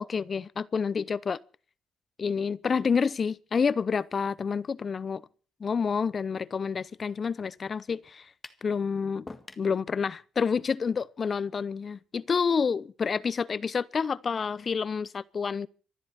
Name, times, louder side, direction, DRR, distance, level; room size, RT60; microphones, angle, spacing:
voice 1, 0.0-1.4 2.2-5.2 5.6-8.3 8.6-9.3 9.6-15.7, left 5 dB, 40° left, 0.8 m, -28 dB
sound 1, 8.4-8.7 9.3-9.7, left 3 dB, 20° left, 1.8 m, -44 dB
25.5 x 11.5 x 4.3 m
cardioid pair, 90°, 0 cm